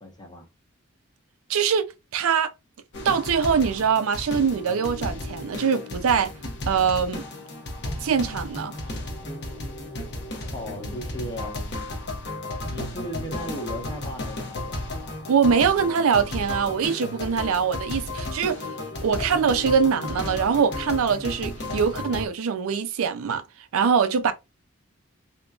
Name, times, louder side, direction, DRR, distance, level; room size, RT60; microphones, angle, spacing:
voice 1, 0.0-0.5 10.5-11.5 12.2-12.4 12.6-14.8, equal, 20° left, 0.9 m, -36 dB
voice 2, 1.5-1.9 2.1-2.5 3.0-6.3 6.7-7.2 8.0-8.7 15.3-18.7 19.0-23.4 23.7-24.3, right 6 dB, 70° right, 0.4 m, -23 dB
sound 1, 2.9-22.3, left 1 dB, 50° left, 0.9 m, -34 dB
3.7 x 2.9 x 2.3 m
head